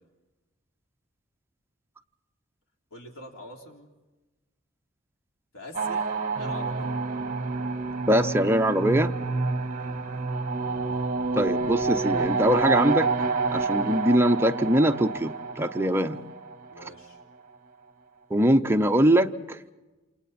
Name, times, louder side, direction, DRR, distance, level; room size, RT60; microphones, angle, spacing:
voice 1, 2.9-3.9 5.5-7.0 9.7-10.1 16.7-17.2, left 1 dB, 75° left, 1 dB, 3.5 m, -44 dB
sound 1, 5.7-16.9, right 4 dB, 40° right, 1.6 m, -28 dB
voice 2, 8.1-9.1 11.3-13.1 13.5-16.2 18.3-19.6, right 1 dB, 10° right, 6 dB, 0.7 m, -22 dB
28.5 x 28.0 x 4.3 m, 1.1 s
head